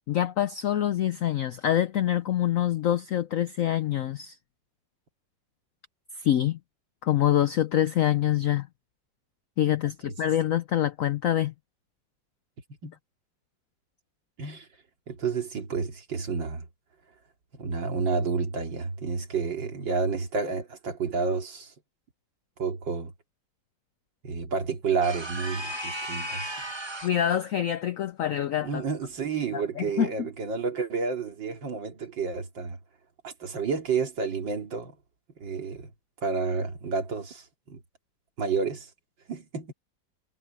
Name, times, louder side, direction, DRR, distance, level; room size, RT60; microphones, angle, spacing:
voice 1, 0.1-4.4 6.2-6.6 7.0-8.7 9.6-11.5 27.0-28.8 29.5-30.3, left 11 dB, 75° left, 0.7 m, -25 dB
voice 2, 15.1-16.7 17.5-21.7 22.6-23.1 24.2-26.5 28.6-32.8 33.2-35.0 35.4-35.9 36.2-37.8 38.4-38.9 39.3-39.7, right 5 dB, 75° right, 3.2 m, -30 dB
sound 1, 25.0-27.3, right 1 dB, 15° right, 1.1 m, -35 dB
omnidirectional pair, 2.0 m